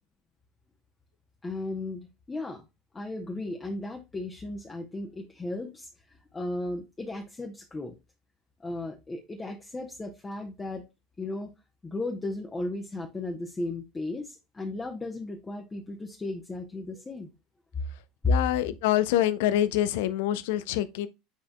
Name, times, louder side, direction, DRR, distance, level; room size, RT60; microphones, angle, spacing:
voice 1, 1.4-2.6 2.9-7.9 8.6-10.8 11.2-11.5 11.8-17.3 18.2-18.4, left 2 dB, 15° left, 0.9 m, -34 dB
voice 2, 18.3-21.1, left 13 dB, 60° left, 0.6 m, -26 dB
8.4 x 4.9 x 2.3 m
figure-of-eight pair, 75°, 0 cm